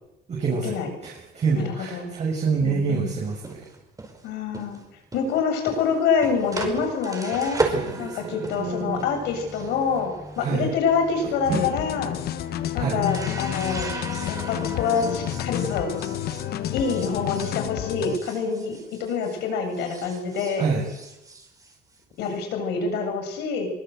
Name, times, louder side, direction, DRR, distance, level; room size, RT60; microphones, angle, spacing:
voice 1, 0.3-3.7 7.7-9.1 10.4-10.7 11.2-11.6 12.7-13.0 20.6-20.8, right 5 dB, 40° right, -2 dB, 6.7 m, -27 dB
voice 2, 1.5-2.1 2.6-3.1 4.2-4.8 5.1-7.6 8.0-12.2 12.7-13.9 14.3-15.9 16.7-20.6 22.2-23.7, left 5 dB, 85° left, 5 dB, 7.6 m, -26 dB
sound 1, 3.3-19.5 19.7-22.3, right 3 dB, 20° right, 5.1 m, -36 dB
sound 2, 11.4-18.2, left 12 dB, 70° left, 1.3 m, -30 dB
24.0 x 21.0 x 8.1 m, 0.93 s
cardioid pair, 110°, 17 cm